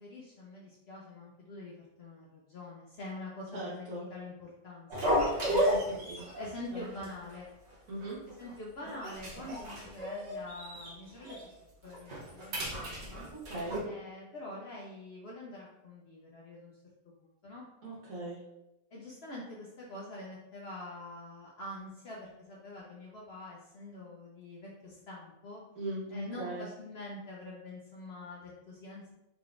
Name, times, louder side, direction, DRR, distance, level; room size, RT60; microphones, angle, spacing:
voice 1, 0.0-5.5 6.3-7.5 8.4-11.4 11.8-13.3 13.8-16.7 17.2-17.7 18.9-25.6 26.1-29.1, left 2 dB, 60° left, -3 dB, 0.7 m, -45 dB
voice 2, 3.5-4.0 5.4-6.2 6.7-7.1 7.9-8.2 13.3-13.8 17.8-18.4 25.7-26.6, right 1 dB, 70° right, -6 dB, 1.7 m, -40 dB
sound 1, 4.9-6.5 6.8-7.0 7.3-7.4 8.0-8.5 8.8-10.9 11.2-11.4 11.9-13.8, equal, 50° right, 1.1 m, -33 dB
3.7 x 3.5 x 2.4 m, 0.91 s
omnidirectional pair, 1.6 m